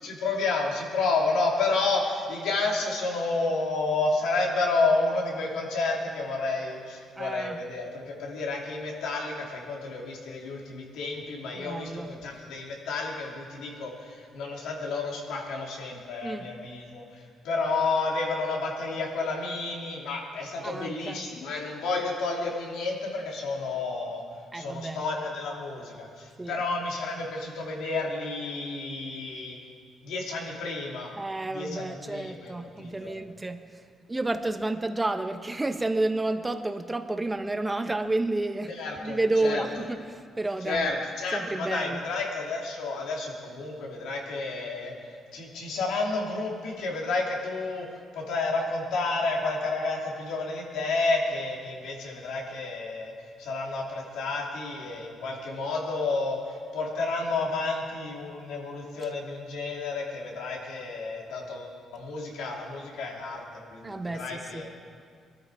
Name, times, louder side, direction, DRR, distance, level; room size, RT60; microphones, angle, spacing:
voice 1, 0.0-24.2 24.5-29.6 30.0-31.1 31.5-33.2 38.7-39.7 40.6-53.1 53.4-64.7, left 3 dB, 85° left, -1 dB, 3.0 m, -31 dB
voice 2, 7.2-7.6 11.5-12.1 16.2-16.5 20.6-21.3 24.5-25.0 26.4-26.6 31.1-33.8 34.1-38.7 39.0-40.9 41.3-42.0 63.8-64.7, right 2 dB, 15° right, 7 dB, 1.1 m, -30 dB
23.0 x 12.5 x 5.0 m, 2.1 s
cardioid pair, 90°, 0 cm